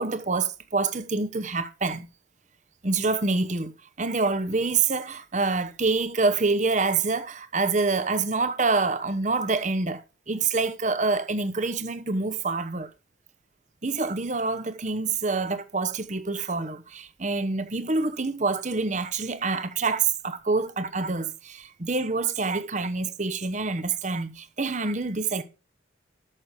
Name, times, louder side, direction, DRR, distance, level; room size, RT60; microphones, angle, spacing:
voice 1, 0.0-2.1 2.8-3.7 4.0-12.9 13.8-25.4, right 3 dB, 40° right, 1.0 m, -26 dB
11.0 x 6.6 x 5.3 m
head